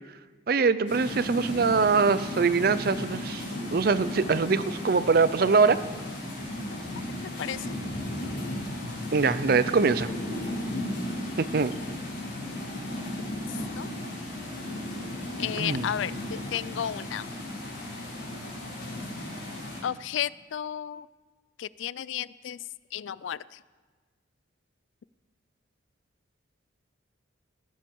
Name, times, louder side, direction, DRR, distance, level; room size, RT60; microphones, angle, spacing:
voice 1, 0.5-3.4 3.7-5.8 9.1-10.1 11.4-11.7 15.6-15.9, right 4 dB, 50° right, 15 dB, 0.5 m, -23 dB
sound 1, 0.9-19.8, left 1 dB, 55° left, 5.2 m, -35 dB
voice 2, 7.4-7.7 13.5-13.9 15.4-17.3 19.8-21.1 21.6-22.6 22.9-23.6, left 10 dB, 75° left, 20 dB, 0.3 m, -33 dB
19.5 x 10.0 x 4.6 m, 1.4 s
head